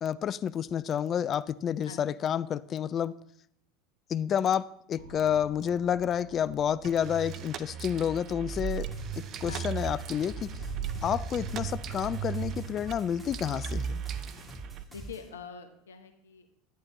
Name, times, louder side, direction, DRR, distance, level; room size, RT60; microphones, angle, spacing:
voice 1, 0.0-3.2 4.1-8.9 9.2-10.5 11.0-14.0, left 9 dB, 40° left, 19 dB, 0.3 m, -29 dB
sound 1, 5.0-15.0, right 2 dB, 70° right, 1.2 m, -47 dB
sound 2, 6.8-14.8, right 8 dB, 45° right, 0.6 m, -37 dB
sound 3, 8.5-15.3, right 2 dB, 5° right, 2.6 m, -45 dB
voice 2, 14.9-16.5, left 5 dB, 80° left, 8 dB, 1.0 m, -44 dB
11.0 x 10.0 x 3.1 m, 0.68 s
hypercardioid pair, 80°, 0 cm